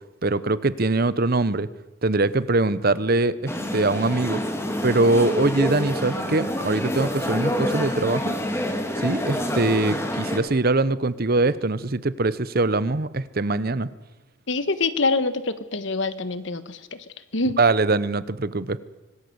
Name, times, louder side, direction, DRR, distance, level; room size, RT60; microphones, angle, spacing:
voice 1, 0.2-1.7 2.0-4.4 4.8-8.4 9.0-13.9 17.6-18.8, right 2 dB, 45° right, 16 dB, 0.9 m, -22 dB
sound 1, 3.5-10.4, left 1 dB, 10° left, 2.8 m, -27 dB
voice 2, 14.5-16.8 17.3-17.6, left 3 dB, 60° left, 13 dB, 1.4 m, -25 dB
25.5 x 19.0 x 8.0 m, 1.1 s
head